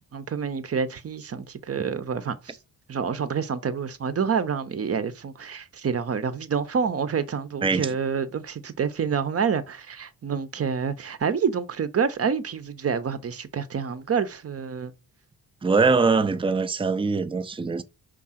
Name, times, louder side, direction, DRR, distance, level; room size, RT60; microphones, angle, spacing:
voice 1, 0.1-2.6 2.9-14.9, right 6 dB, 40° right, 0.8 m, -28 dB
voice 2, 15.6-17.8, right 4 dB, 15° right, 0.5 m, -22 dB
5.3 x 3.7 x 5.7 m
wide cardioid pair, 125°, 36 cm